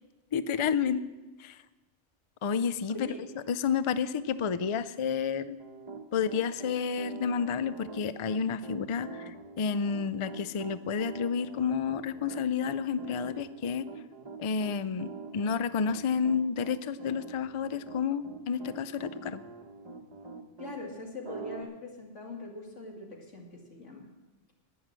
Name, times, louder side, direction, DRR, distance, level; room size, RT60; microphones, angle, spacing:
voice 1, 0.3-1.0 1.4-1.6 2.4-3.0 3.5-5.6 6.1-13.9 14.4-19.4, left 6 dB, 55° left, 14 dB, 0.3 m, -30 dB
voice 2, 2.9-3.2 20.6-24.1, left 2 dB, 85° left, -1 dB, 2.7 m, -42 dB
Piano, 5.6-20.8 21.2-21.6, right 4 dB, 25° right, 1.0 m, -44 dB
11.0 x 9.9 x 7.5 m, 1.1 s
omnidirectional pair, 1.2 m